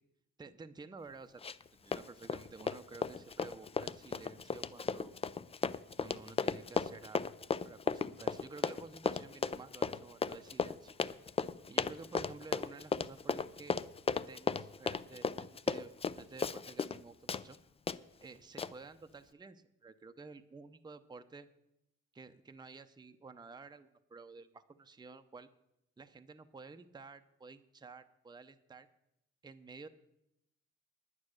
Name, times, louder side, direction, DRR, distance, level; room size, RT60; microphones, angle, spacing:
voice 1, 0.4-1.4 1.8-5.1 6.0-7.3 7.6-11.0 11.7-13.8 14.1-17.6 18.2-21.5 22.1-25.5 26.0-28.9 29.4-29.9, right 4 dB, 15° right, 9 dB, 0.7 m, -52 dB
Run, 1.4-1.7 1.9-17.0 17.3-17.4 17.9-18.0 18.6-18.7, left 5 dB, 20° left, 0.4 m, -35 dB
9.7 x 9.6 x 6.4 m, 0.82 s
cardioid pair, 90°, 30 cm